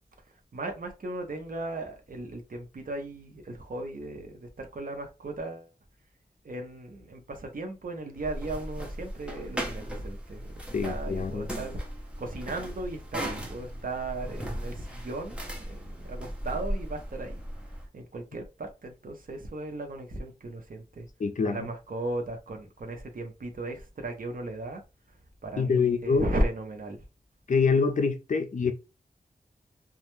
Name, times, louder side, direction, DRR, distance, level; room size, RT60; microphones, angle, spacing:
voice 1, 0.5-5.7 6.4-10.5 10.8-11.8 12.2-17.4 17.9-21.1 21.4-24.8 25.4-27.0, right 2 dB, 60° right, 0.7 m, -36 dB
sound 1, 8.1-17.9, right 1 dB, 5° right, 0.7 m, -37 dB
voice 2, 10.7-11.5 21.2-21.6 25.6-26.3 27.5-28.7, left 5 dB, 55° left, 0.4 m, -25 dB
2.3 x 2.1 x 3.0 m
wide cardioid pair, 100°, 16 cm